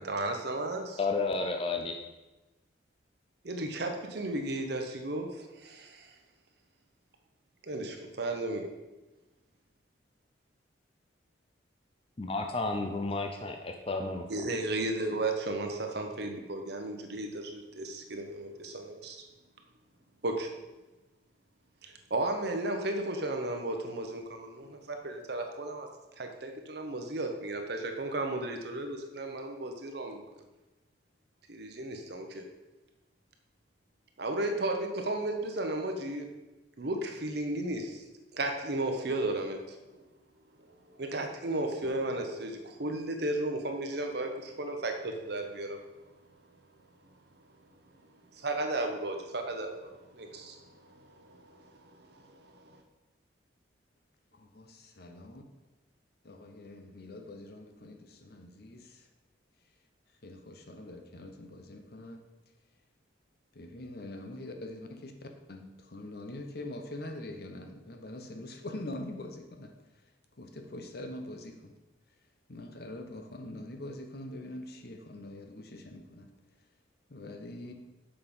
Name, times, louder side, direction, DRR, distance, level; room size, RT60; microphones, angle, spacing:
voice 1, 0.0-1.0 3.4-6.1 7.6-8.6 14.3-19.2 20.2-20.5 21.8-25.9 26.2-30.2 31.5-32.4 34.2-36.3 36.8-38.0 38.3-39.8 40.6-40.7 41.0-46.1 48.3-52.8, right 2 dB, 60° right, 4 dB, 1.0 m, -34 dB
voice 2, 1.0-1.9 12.2-14.3, left 3 dB, 30° left, 4 dB, 0.5 m, -32 dB
voice 3, 54.3-55.4 56.2-59.1 60.2-62.2 63.5-69.7 70.4-71.7 72.5-76.3 77.1-77.7, left 1 dB, 55° left, 5 dB, 0.9 m, -44 dB
7.0 x 5.6 x 5.3 m, 1.1 s
head